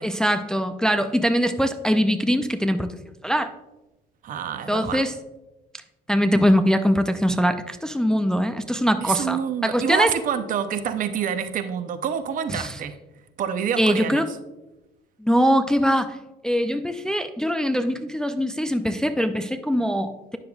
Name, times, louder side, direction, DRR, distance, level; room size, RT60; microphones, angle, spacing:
voice 1, 0.0-2.9 3.2-3.5 4.7-5.1 6.1-10.1 12.5-12.8 13.8-14.3 15.2-16.2 16.4-20.4, equal, 5° left, 8 dB, 0.3 m, -22 dB
voice 2, 4.2-5.0 9.0-13.0 13.4-14.2, right 8 dB, 55° right, 10 dB, 0.6 m, -27 dB
9.7 x 6.4 x 2.3 m, 1.0 s
cardioid pair, 110°, 17 cm